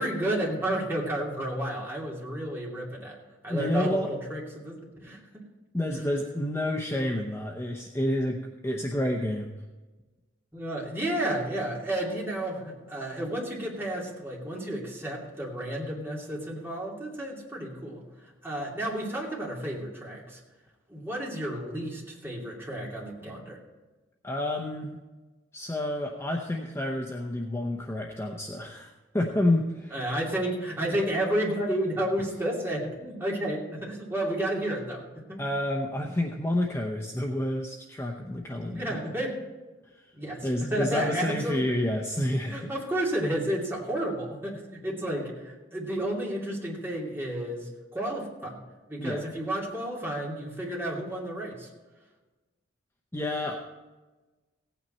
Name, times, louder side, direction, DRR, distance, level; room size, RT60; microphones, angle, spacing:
voice 1, 0.0-3.2 3.4-5.4 10.5-18.0 18.4-20.4 20.9-23.6 29.9-35.0 35.3-35.4 38.7-39.4 40.1-41.6 42.4-48.6 48.9-51.7, right 1 dB, 10° right, -4 dB, 2.6 m, -31 dB
voice 2, 3.5-4.1 5.7-9.5 24.2-25.0 25.5-30.0 35.4-38.9 39.9-40.0 40.4-42.7 49.0-49.2 53.1-53.5, left 1 dB, 15° left, 0 dB, 0.8 m, -29 dB
16.5 x 9.1 x 4.3 m, 1.2 s
head